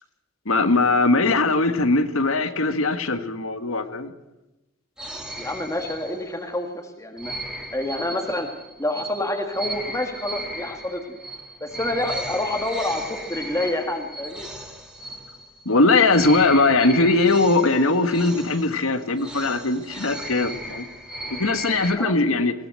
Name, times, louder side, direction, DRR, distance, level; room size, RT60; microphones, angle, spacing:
voice 1, 0.4-4.1 15.6-20.8 21.3-22.5, left 3 dB, 90° left, 9 dB, 1.8 m, -20 dB
sound 1, 5.0-6.5 7.2-15.7 16.1-22.0, right 1 dB, 5° right, 2.5 m, -36 dB
voice 2, 5.4-7.3 7.7-8.5 8.8-11.2 11.6-14.5 22.0-22.1, left 1 dB, 15° left, 3 dB, 1.8 m, -28 dB
20.5 x 18.0 x 7.8 m, 0.97 s
head